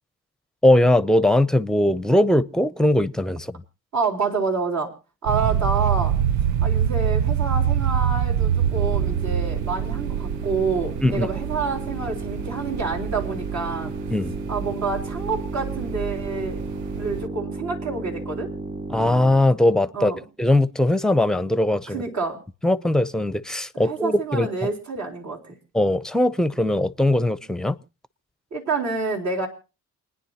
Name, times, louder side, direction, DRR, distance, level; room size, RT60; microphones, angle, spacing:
voice 1, 0.6-3.6 11.0-11.3 14.1-14.4 18.9-20.1 20.4-22.0 22.6-24.7 25.7-27.8, left 1 dB, ahead, 0.6 m, -20 dB
voice 2, 3.9-4.9 5.2-6.1 6.6-13.9 14.5-16.6 17.0-18.5 19.9-20.2 21.9-22.4 23.7-25.5 28.5-29.5, right 4 dB, 70° right, 4.0 m, -28 dB
sound 1, 5.3-17.3, right 9 dB, 90° right, 0.6 m, -25 dB
sound 2, 8.5-19.5, right 2 dB, 35° right, 2.9 m, -34 dB
28.5 x 9.9 x 2.9 m
cardioid pair, 90°, 30 cm